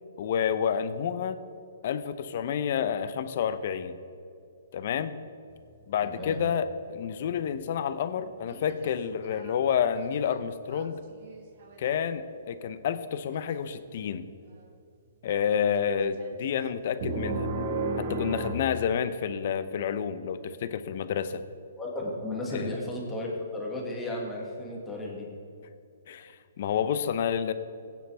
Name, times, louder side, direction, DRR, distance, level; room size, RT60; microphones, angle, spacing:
voice 1, 0.2-1.4 1.8-4.0 4.7-5.1 5.9-11.0 11.8-14.3 15.2-17.5 18.0-21.4 22.5-22.7 26.1-26.3 26.6-27.5, left 8 dB, 50° left, 12 dB, 0.7 m, -29 dB
sound 1, 5.5-7.8 8.2-8.9 9.2-9.6 9.9-12.0 13.3-13.6 15.8-16.4 17.0-18.5, right 2 dB, 45° right, 1.4 m, -34 dB
voice 2, 6.0-6.4 21.8-25.3, left 1 dB, 10° left, -3 dB, 2.0 m, -34 dB
16.0 x 9.4 x 3.5 m, 2.6 s
hypercardioid pair, 155°, 0 cm